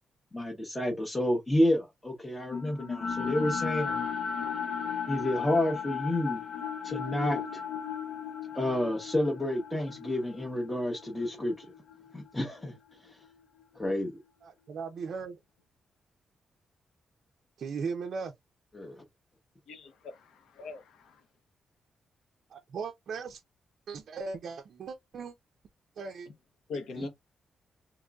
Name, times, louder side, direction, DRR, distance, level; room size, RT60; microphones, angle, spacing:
voice 1, 0.3-4.0 5.1-6.4 6.8-7.6 8.5-11.7 12.1-13.2 13.7-14.1 18.7-19.0 27.0-27.1, left 1 dB, 10° left, 0.7 m, -30 dB
sound 1, 2.5-12.7, left 6 dB, 60° left, 0.6 m, -36 dB
voice 2, 14.4-15.4 17.6-18.3 22.5-23.4 23.9-25.3 26.0-26.3, right 5 dB, 55° right, 0.4 m, -37 dB
voice 3, 19.7-21.2 26.7-27.1, left 4 dB, 85° left, 0.9 m, -42 dB
3.7 x 2.9 x 2.3 m
wide cardioid pair, 165°, 0 cm